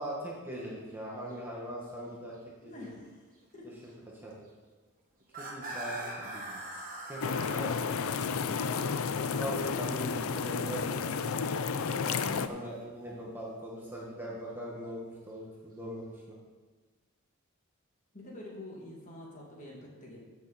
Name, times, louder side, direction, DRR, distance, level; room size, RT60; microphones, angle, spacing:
voice 1, 0.0-2.3 2.6-2.9 3.8-3.9 4.2-4.4 5.4-6.6 7.0-8.1 9.4-11.1 11.9-12.2 12.4-16.3, right 1 dB, 10° right, -4 dB, 1.6 m, -41 dB
sound 1, 0.6-0.7 1.2-1.3 1.8-1.9 3.8-3.9 5.2-8.4 11.5-13.0 14.3-14.6, right 1 dB, 40° right, 1.8 m, -42 dB
voice 2, 2.6-3.2 3.5-3.7 6.0-6.1 7.8-9.0 12.1-12.5 18.1-20.2, left 1 dB, 35° left, -3 dB, 2.4 m, -47 dB
sound 2, 7.2-12.5, left 5 dB, 70° left, 0.5 m, -32 dB
14.5 x 6.8 x 4.2 m, 1.3 s
head